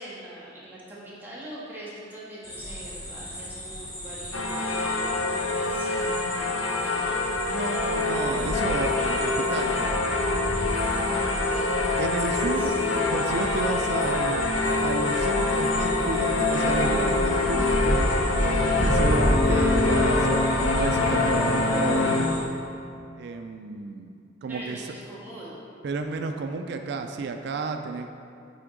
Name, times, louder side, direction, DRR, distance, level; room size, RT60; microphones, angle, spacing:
voice 1, 0.0-7.1 10.9-11.8 12.2-12.7 24.5-25.6, right 1 dB, 10° right, -8 dB, 1.5 m, -42 dB
sound 1, 2.4-22.4, equal, 20° left, 1.2 m, -31 dB
sound 2, 4.3-22.3, left 3 dB, 80° left, 0.6 m, -25 dB
voice 2, 7.5-10.2 12.0-12.8 13.1-14.5 14.8-22.2 23.2-24.9 25.8-28.1, right 4 dB, 55° right, 6 dB, 0.3 m, -32 dB
9.3 x 3.5 x 3.8 m, 2.5 s
head